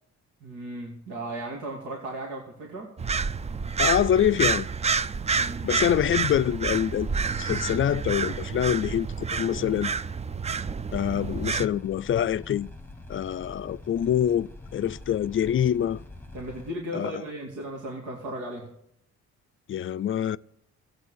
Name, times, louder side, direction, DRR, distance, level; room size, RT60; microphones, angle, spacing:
voice 1, 0.4-2.9 5.4-5.9 16.3-18.7, right 1 dB, 85° right, 2.6 m, -36 dB
sound 1, 3.0-11.7, right 5 dB, 20° right, 0.4 m, -29 dB
voice 2, 3.8-4.7 5.6-9.9 10.9-12.7 13.1-16.0 16.9-17.1 19.7-20.4, left 10 dB, 45° left, 0.4 m, -25 dB
sound 2, 11.0-16.7, left 2 dB, 5° left, 1.4 m, -44 dB
15.0 x 8.3 x 6.4 m
cardioid pair, 90°, 30 cm